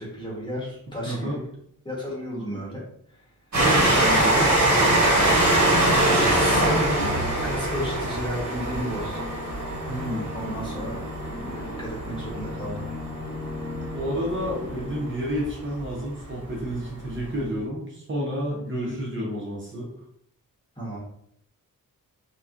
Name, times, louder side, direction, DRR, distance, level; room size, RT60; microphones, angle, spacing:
voice 1, 0.0-1.4 1.8-2.8 3.1-3.2 4.1-4.5 6.0-9.3 10.3-11.0 11.3-12.8 18.7-18.9 20.8-21.0, equal, 15° left, -5 dB, 1.0 m, -33 dB
voice 2, 1.0-1.4 3.5-5.0 9.9-10.3 13.9-19.9, equal, 35° right, -4 dB, 0.7 m, -30 dB
Train, 3.5-14.7 15.4-15.5 15.7-15.8, right 1 dB, 50° right, 1.4 m, -23 dB
Musical instrument, 7.0-15.5, left 1 dB, 50° left, 1.0 m, -36 dB
4.1 x 2.2 x 2.4 m, 0.70 s
wide cardioid pair, 145°, 35 cm